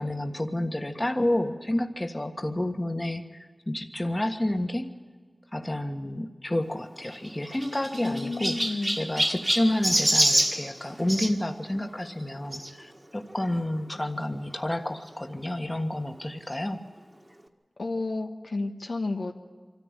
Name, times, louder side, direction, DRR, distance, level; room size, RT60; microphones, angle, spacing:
voice 1, 0.0-4.9 5.5-8.6 8.9-16.8, left 1 dB, 25° left, 5 dB, 1.5 m, -30 dB
Chirp tweet, 7.0-11.3 12.5-12.7 13.4-13.5 13.7-13.8 15.1-15.2, right 1 dB, 20° right, 1.7 m, -26 dB
voice 2, 8.0-9.0 17.8-19.4, left 3 dB, 80° left, 3 dB, 1.4 m, -31 dB
24.5 x 14.0 x 9.0 m, 1.5 s
wide cardioid pair, 50°, 0 cm